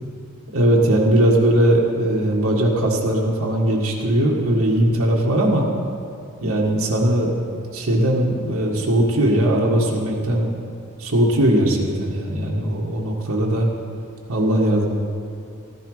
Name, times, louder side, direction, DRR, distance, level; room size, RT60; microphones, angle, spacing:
voice 1, 0.5-5.7 6.4-7.3 7.7-10.5 11.0-13.7 14.3-14.9, right 1 dB, 75° right, -2 dB, 1.8 m, -19 dB
14.5 x 11.5 x 5.0 m, 2.4 s
head